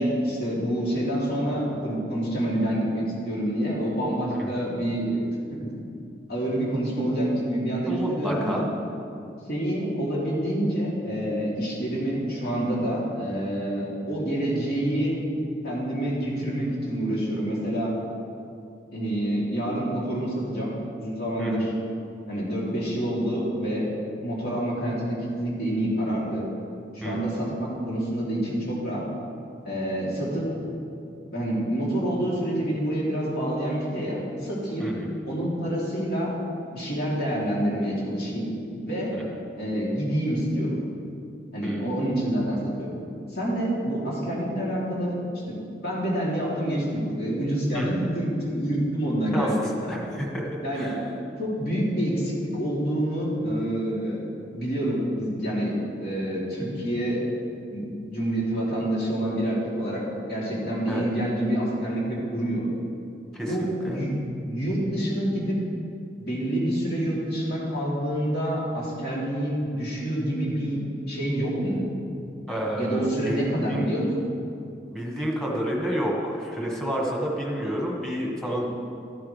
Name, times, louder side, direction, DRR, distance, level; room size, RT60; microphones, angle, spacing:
voice 1, 0.0-5.2 5.5-5.7 6.3-8.6 9.5-15.2 15.6-17.9 18.9-21.7 22.3-23.9 24.2-26.4 26.9-29.0 29.6-30.6 31.3-34.9 35.3-36.3 36.7-38.5 38.8-39.1 39.6-40.7 41.5-42.9 43.3-45.2 45.4-49.5 49.8-49.9 50.6-50.9 51.4-54.2 54.5-57.2 57.7-60.0 60.3-62.6 63.5-64.1 64.4-65.6 66.2-70.8 71.1-71.8 72.8-74.1, right 1 dB, 60° left, -6 dB, 3.1 m, -27 dB
voice 2, 7.9-8.6 21.4-21.7 27.0-27.3 34.8-35.1 41.6-41.9 47.7-48.0 49.3-50.4 50.7-51.0 60.9-61.0 63.3-64.0 72.5-73.9 74.9-78.6, equal, 5° left, -3 dB, 1.7 m, -30 dB
13.0 x 11.0 x 3.4 m, 2.5 s
head